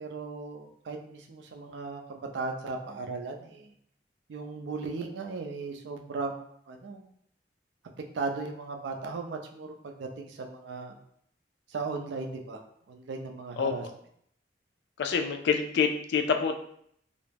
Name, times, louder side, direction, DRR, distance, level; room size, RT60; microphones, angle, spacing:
voice 1, 0.0-3.7 4.3-7.1 8.1-10.9 11.7-12.6 12.9-13.9, right 4 dB, 75° right, 2 dB, 0.4 m, -37 dB
voice 2, 15.0-16.6, left 6 dB, 65° left, 6 dB, 0.3 m, -26 dB
2.3 x 2.0 x 3.3 m, 0.68 s
head